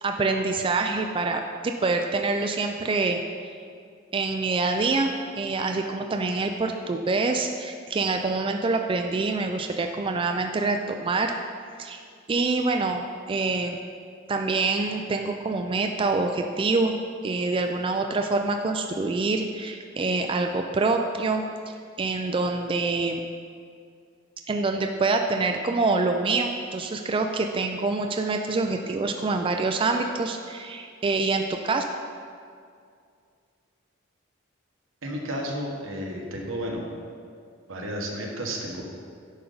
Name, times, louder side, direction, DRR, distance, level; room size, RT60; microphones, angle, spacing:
voice 1, 0.0-3.2 4.1-11.3 11.8-12.0 12.3-13.8 14.3-17.0 17.2-21.4 22.0-23.2 24.5-31.8, right 3 dB, 25° right, 4 dB, 0.3 m, -26 dB
voice 2, 35.0-36.9 37.7-38.8, equal, 85° right, -1 dB, 1.3 m, -32 dB
10.0 x 5.3 x 3.9 m, 2.3 s
head